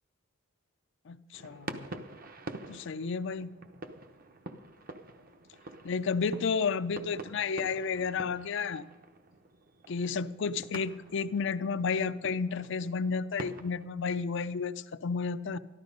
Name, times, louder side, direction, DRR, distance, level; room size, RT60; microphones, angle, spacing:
voice 1, 1.1-1.9 2.7-3.5 5.8-8.8 9.9-15.6, left 5 dB, 65° left, 13 dB, 0.5 m, -32 dB
sound 1, 1.3-13.9, right 2 dB, 45° right, 0.9 m, -47 dB
13.5 x 12.0 x 5.3 m, 1.2 s
head